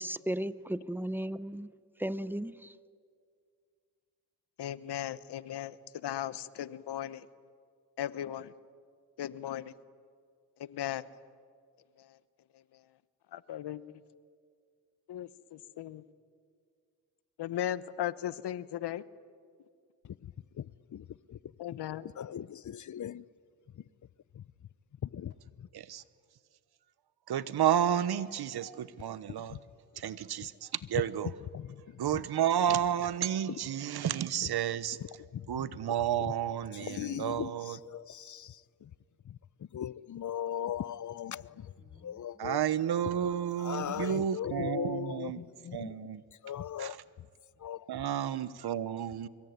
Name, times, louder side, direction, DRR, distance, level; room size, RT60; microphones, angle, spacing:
voice 1, 0.0-1.7 2.0-2.7 42.0-42.1, right 1 dB, 5° right, 0.8 m, -35 dB
voice 2, 4.6-7.3 8.0-8.5 9.2-9.7 10.6-11.0 12.0-12.2 12.7-12.8 13.3-13.8 15.1-16.0 17.4-19.0 21.6-22.0, left 11 dB, 75° left, 1.1 m, -37 dB
voice 3, 20.0-20.7 20.9-21.4 22.2-23.2 24.4-24.5 25.1-25.3 29.5-29.6 31.2-31.8 32.1-32.2 33.5-33.6 34.0-34.1 35.3-35.6 36.2-36.3 36.7-38.9 39.3-39.4 39.7-41.7 42.0-42.6 43.6-46.0 46.4-47.0 47.6-47.9, left 10 dB, 45° left, 0.7 m, -39 dB
voice 4, 27.3-29.6 30.0-31.3 32.0-35.0 35.5-37.8 42.4-45.4 45.7-46.2 46.8-47.0 47.9-49.3, right 10 dB, 65° right, 1.1 m, -31 dB
25.0 x 23.0 x 9.6 m
cardioid pair, 75°, 41 cm